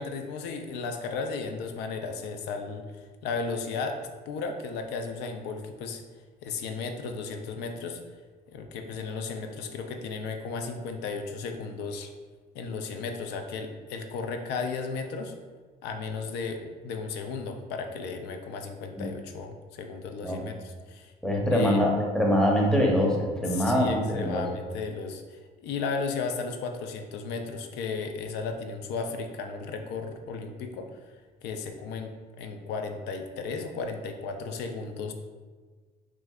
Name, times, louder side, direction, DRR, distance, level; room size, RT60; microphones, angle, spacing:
voice 1, 0.0-6.0 6.4-8.0 8.5-12.1 12.5-15.3 15.8-21.1 21.5-21.8 23.5-31.1 31.4-35.1, left 4 dB, 85° left, 5 dB, 0.4 m, -35 dB
voice 2, 21.2-24.4, equal, 5° left, -1 dB, 0.7 m, -24 dB
6.1 x 2.5 x 2.3 m, 1.4 s
cardioid pair, 110°, 17 cm